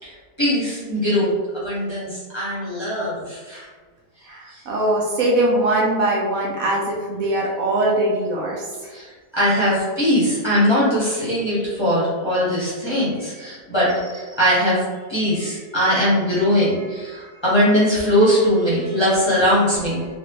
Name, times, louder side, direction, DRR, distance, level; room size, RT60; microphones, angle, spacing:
voice 1, 0.0-3.7 4.5-4.6 8.9-14.8 15.1-20.1, equal, 20° left, -10 dB, 0.8 m, -20 dB
voice 2, 4.3-8.9, right 1 dB, 70° right, -3 dB, 0.9 m, -21 dB
3.4 x 2.4 x 2.9 m, 1.4 s
omnidirectional pair, 1.6 m